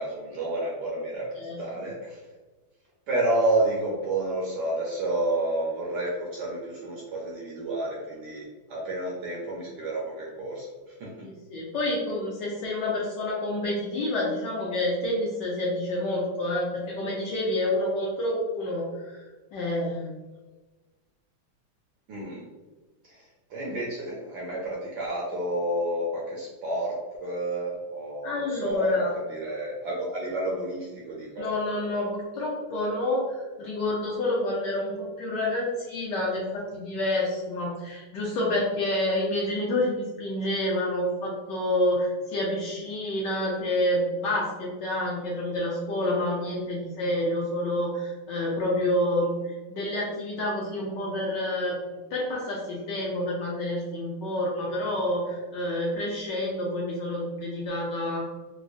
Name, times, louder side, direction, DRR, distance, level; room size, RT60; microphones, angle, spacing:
voice 1, 0.0-1.3 1.6-2.2 3.1-11.3 22.1-22.5 23.0-31.5, right 1 dB, 70° right, -4 dB, 1.1 m, -30 dB
voice 2, 11.2-20.1 28.2-29.1 31.4-58.2, left 1 dB, 70° left, -4 dB, 1.1 m, -28 dB
4.7 x 2.0 x 2.5 m, 1.2 s
omnidirectional pair, 2.3 m